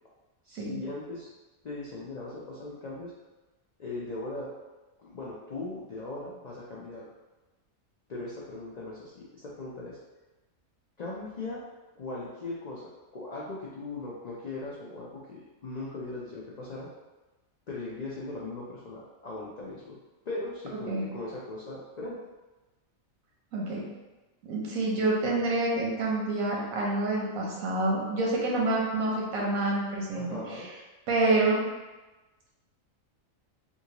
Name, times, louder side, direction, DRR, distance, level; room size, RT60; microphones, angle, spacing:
voice 1, 0.4-1.3 1.6-3.1 3.8-4.5 5.0-7.0 8.1-10.0 11.0-11.6 11.9-16.9 17.7-20.0 20.3-22.2 30.1-30.7, left 2 dB, 80° left, -6 dB, 0.3 m, -39 dB
voice 2, 24.4-30.6 31.1-31.6, right 2 dB, 85° right, -2 dB, 1.2 m, -27 dB
3.5 x 2.6 x 2.9 m, 1.1 s
omnidirectional pair, 1.4 m